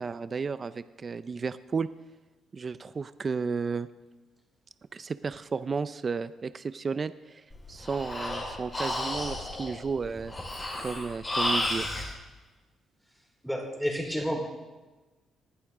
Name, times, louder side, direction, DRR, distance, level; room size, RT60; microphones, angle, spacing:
voice 1, 0.0-1.9 2.5-3.9 4.9-10.3 10.8-11.9, right 5 dB, 35° right, 14 dB, 0.5 m, -33 dB
Breathing, 7.5-12.1, left 1 dB, 25° left, 4.6 m, -32 dB
voice 2, 13.4-14.4, equal, ahead, 0 dB, 4.0 m, -30 dB
19.5 x 11.5 x 3.7 m, 1.2 s
cardioid pair, 90°, 0 cm